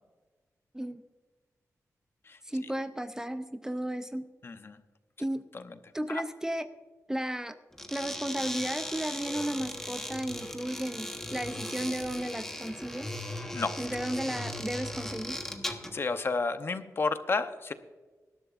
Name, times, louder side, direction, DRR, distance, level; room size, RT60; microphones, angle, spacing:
voice 1, 2.4-4.3 5.2-5.5 5.9-6.7 7.1-7.6 7.9-13.1 13.8-15.4, right 1 dB, 10° right, 10 dB, 0.5 m, -34 dB
voice 2, 4.4-4.8 5.5-5.7 6.1-6.2 13.5-13.7 15.6-17.7, left 4 dB, 40° left, 10 dB, 0.8 m, -32 dB
sound 1, 7.7-16.0, left 1 dB, 5° left, 1.3 m, -38 dB
19.5 x 12.0 x 2.5 m, 1.3 s
wide cardioid pair, 135°, 6 cm